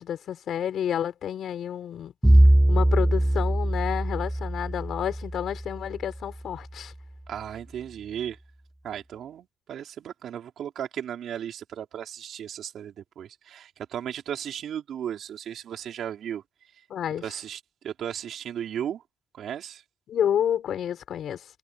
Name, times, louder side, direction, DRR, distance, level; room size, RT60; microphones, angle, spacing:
voice 1, 0.0-2.1 2.7-6.9 16.9-17.3 20.1-21.4, left 9 dB, 65° left, 4.9 m, -29 dB
Bowed string instrument, 2.2-6.4, right 1 dB, 5° right, 0.5 m, -22 dB
voice 2, 7.3-8.4 8.8-16.4 17.2-19.0 19.4-19.8, right 9 dB, 70° right, 3.9 m, -35 dB
cardioid pair, 90°, 0 cm